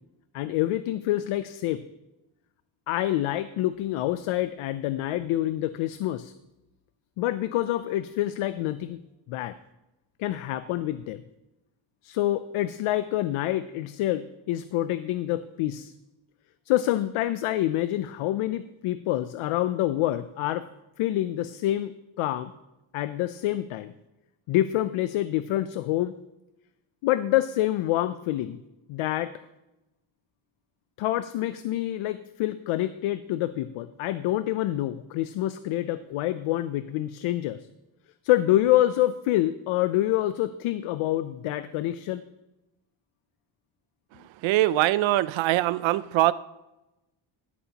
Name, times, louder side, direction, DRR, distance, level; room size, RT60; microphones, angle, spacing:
voice 1, 0.3-1.8 2.9-6.3 7.2-9.0 9.3-9.5 10.2-11.2 12.0-15.9 16.7-20.6 21.0-22.5 22.9-23.9 24.5-26.2 27.0-28.6 28.9-29.3 31.0-37.7 38.2-42.2, left 14 dB, 90° left, 13 dB, 0.6 m, -27 dB
voice 2, 44.4-46.3, right 15 dB, 70° right, 17 dB, 0.5 m, -22 dB
12.5 x 11.0 x 2.9 m, 0.97 s
cardioid pair, 155°, 49 cm